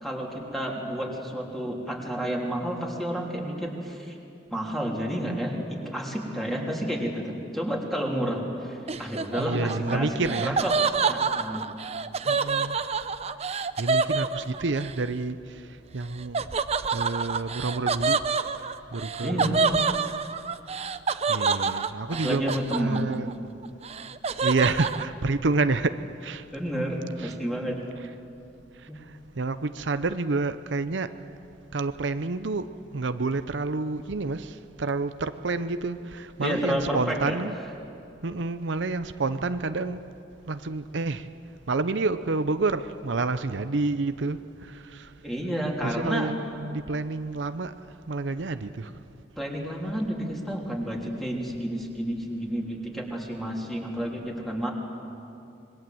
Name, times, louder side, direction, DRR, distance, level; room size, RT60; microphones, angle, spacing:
voice 1, 0.0-4.2 4.5-10.7 11.0-11.6 19.2-19.7 22.2-23.0 26.5-27.8 28.9-29.0 36.4-37.4 45.2-46.3 49.4-54.7, equal, ahead, 3.4 m, -30 dB
Laughter, 8.9-14.9 16.3-23.3 23.6-25.1, right 5 dB, 35° right, 0.7 m, -27 dB
voice 2, 9.4-10.6 12.2-12.9 13.4-16.5 16.9-18.2 18.6-19.6 21.3-23.3 24.4-26.4 27.2-27.4 28.8-31.1 31.7-37.5 38.2-40.0 40.5-41.3 41.7-45.1 45.8-47.7 48.1-48.9, right 3 dB, 75° right, 0.7 m, -29 dB
26.0 x 22.0 x 7.8 m
head